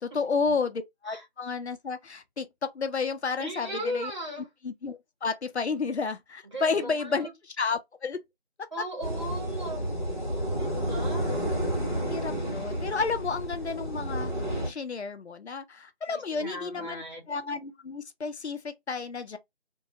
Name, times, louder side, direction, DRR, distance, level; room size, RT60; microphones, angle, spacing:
voice 1, 0.0-4.1 4.6-8.2 12.0-14.3 14.6-19.4, left 4 dB, 80° left, 0.6 m, -31 dB
voice 2, 3.4-4.5 6.5-7.3 8.7-9.9 10.6-11.3 16.1-17.2, equal, 30° right, 1.0 m, -37 dB
sound 1, 9.0-14.7, equal, 45° left, 1.3 m, -31 dB
2.7 x 2.2 x 2.8 m
figure-of-eight pair, 175°, 33 cm